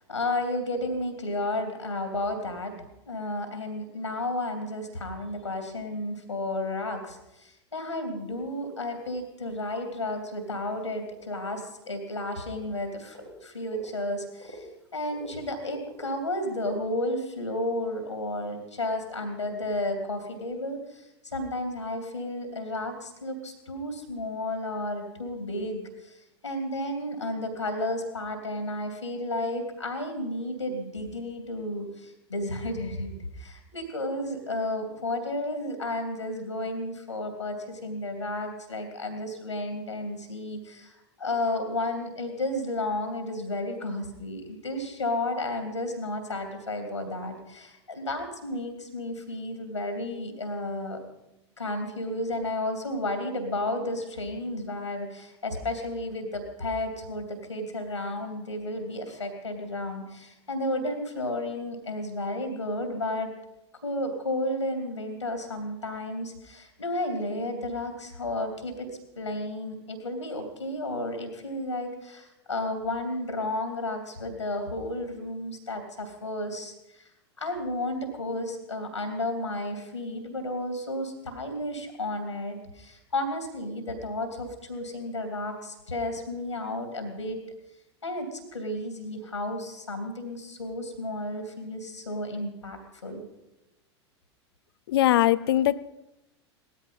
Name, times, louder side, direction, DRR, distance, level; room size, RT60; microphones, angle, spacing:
voice 1, 0.1-2.7 3.1-14.7 14.9-26.2 26.4-51.0 51.6-63.3 63.8-68.9 69.2-77.1 77.4-87.4 88.0-93.2, left 1 dB, 85° left, 6 dB, 2.8 m, -32 dB
sound 1, 8.2-8.3 8.5-8.6 8.9-9.0 9.4-9.5 10.8-10.9 11.3-11.4 12.1-12.2 12.4-12.8 13.1-13.9 14.4-15.4 15.7-16.8, right 1 dB, 85° right, 3.0 m, -46 dB
voice 2, 94.9-95.8, left 13 dB, 60° left, 19 dB, 0.7 m, -21 dB
18.0 x 13.0 x 5.6 m, 0.90 s
figure-of-eight pair, 85°, 15 cm